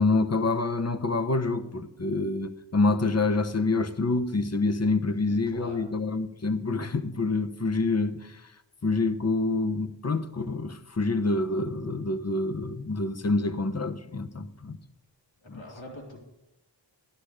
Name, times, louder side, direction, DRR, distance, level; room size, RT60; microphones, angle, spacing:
voice 1, 0.0-8.4 8.8-14.8 15.5-15.6, left 3 dB, 35° left, 1.0 m, -27 dB
voice 2, 5.3-5.8 15.4-16.2, left 1 dB, 75° left, 3.7 m, -43 dB
12.0 x 11.5 x 4.9 m
cardioid pair, 45°, 45 cm